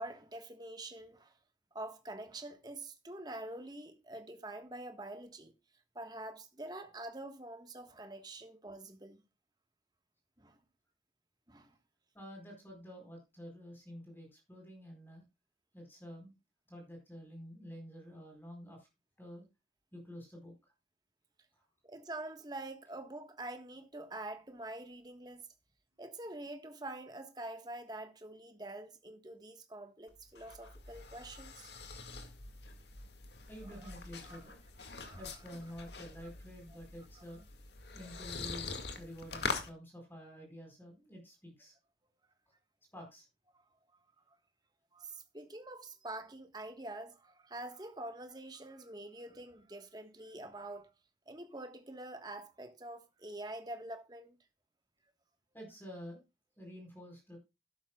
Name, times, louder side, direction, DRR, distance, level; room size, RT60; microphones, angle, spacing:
voice 1, 0.0-1.3 1.7-5.5 5.9-9.2 10.4-10.6 11.5-11.8 21.8-25.5 26.0-31.7 33.7-33.9 34.2-34.5 34.9-35.2 43.5-43.6 44.3-44.4 44.9-50.9 51.3-54.4, right 2 dB, 25° right, 1.4 m, -46 dB
voice 2, 12.1-15.2 15.7-16.3 16.7-18.9 19.2-19.4 19.9-20.5 21.5-21.6 33.5-34.6 35.2-37.4 37.9-41.7 42.9-43.3 55.5-56.2 56.6-57.4, equal, 10° left, 4.5 m, -49 dB
sound 1, 30.1-39.7, left 4 dB, 70° left, 2.0 m, -44 dB
12.5 x 11.5 x 2.3 m
head